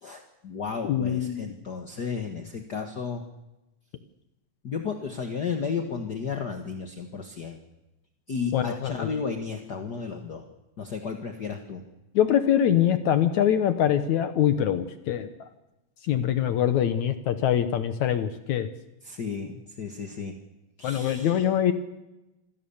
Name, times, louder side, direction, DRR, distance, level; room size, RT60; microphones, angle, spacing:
voice 1, 0.0-3.2 4.6-7.6 8.3-10.4 10.8-11.8 19.0-20.4 20.8-21.4, left 5 dB, 50° left, 4 dB, 1.3 m, -33 dB
voice 2, 0.8-1.5 8.5-9.3 12.1-15.5 16.0-18.7 20.8-21.7, left 10 dB, 65° left, 10 dB, 2.0 m, -24 dB
26.5 x 17.0 x 7.2 m, 0.96 s
omnidirectional pair, 4.1 m